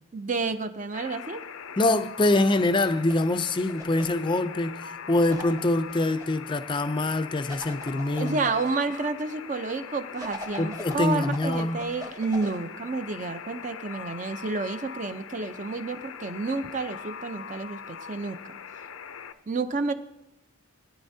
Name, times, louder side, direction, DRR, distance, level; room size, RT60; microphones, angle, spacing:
voice 1, 0.1-1.4 8.1-18.6 19.5-19.9, right 3 dB, 35° right, 0.5 m, -30 dB
Alarm, 0.9-19.3, left 7 dB, 80° left, 0.5 m, -41 dB
voice 2, 1.8-8.5 10.6-11.9, left 2 dB, 25° left, 0.4 m, -25 dB
sound 1, 2.9-4.2 5.3-6.3 7.5-8.7 10.2-12.6, equal, 15° right, 1.0 m, -41 dB
19.0 x 10.0 x 2.7 m
head